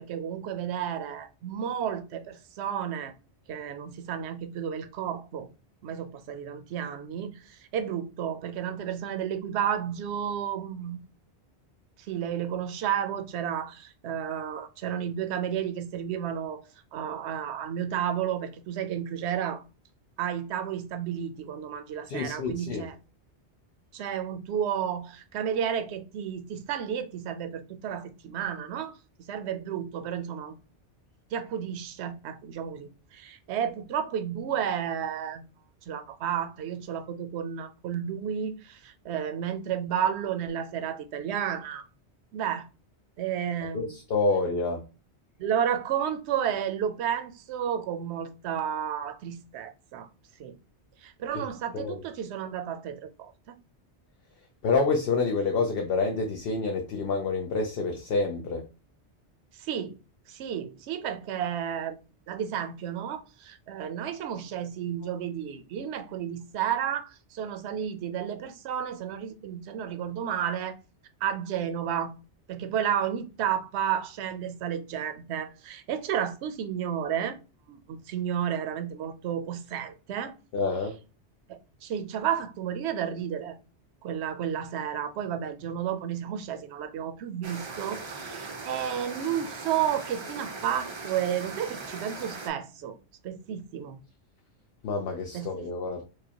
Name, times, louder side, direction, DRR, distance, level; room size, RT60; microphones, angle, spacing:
voice 1, 0.0-3.1 3.5-5.5 5.8-11.0 12.1-16.6 16.9-19.6 20.2-22.9 23.9-29.0 29.3-30.5 31.3-35.4 35.9-41.8 42.3-42.7 43.2-43.9 45.4-50.1 50.4-50.6 51.0-53.6 59.5-60.0 60.3-62.0 62.3-70.8 71.2-72.1 72.5-77.4 77.7-80.3 81.5-83.6 84.0-93.0 93.2-94.0 95.3-95.7, right 9 dB, 75° right, 0.8 m, -32 dB
voice 2, 22.1-22.9 43.7-44.8 51.3-51.5 51.7-52.0 54.6-58.7 80.5-81.0 94.8-96.0, left 3 dB, 65° left, 0.8 m, -28 dB
sound 1, 87.4-92.5, right 3 dB, 40° right, 0.4 m, -39 dB
4.7 x 2.1 x 2.8 m
omnidirectional pair, 1.1 m